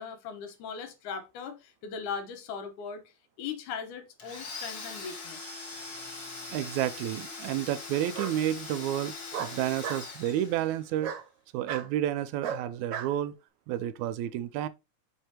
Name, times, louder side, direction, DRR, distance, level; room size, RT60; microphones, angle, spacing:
voice 1, 0.0-3.1 3.4-5.5, left 6 dB, 75° left, 2.5 m, -39 dB
Domestic sounds home sounds, 4.2-11.0, left 3 dB, 40° left, 1.5 m, -42 dB
Bark, 6.0-6.6 8.1-8.4 9.3-10.1 11.0-11.2 11.7-11.9 12.4-13.1, right 8 dB, 60° right, 1.7 m, -35 dB
voice 2, 6.5-11.1 11.5-13.3 13.7-14.7, right 12 dB, 80° right, 1.8 m, -30 dB
6.4 x 5.6 x 2.9 m
omnidirectional pair, 3.7 m